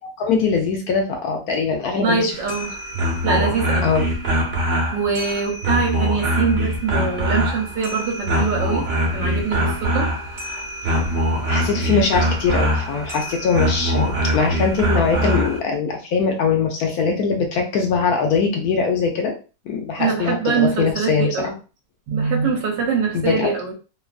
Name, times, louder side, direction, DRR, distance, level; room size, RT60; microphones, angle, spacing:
voice 1, 0.2-2.3 3.8-4.1 11.0-11.1 11.5-19.3 19.7-21.5 23.1-23.5, left 5 dB, 70° left, 2 dB, 0.9 m, -21 dB
voice 2, 2.0-2.7 3.2-3.9 4.9-10.1 10.4-10.5 20.0-21.5 22.1-23.7, right 5 dB, 80° right, 1 dB, 1.3 m, -23 dB
sound 1, 2.3-15.6, equal, 55° right, 0.9 m, -23 dB
3.0 x 2.3 x 2.4 m, 0.34 s
omnidirectional pair, 1.9 m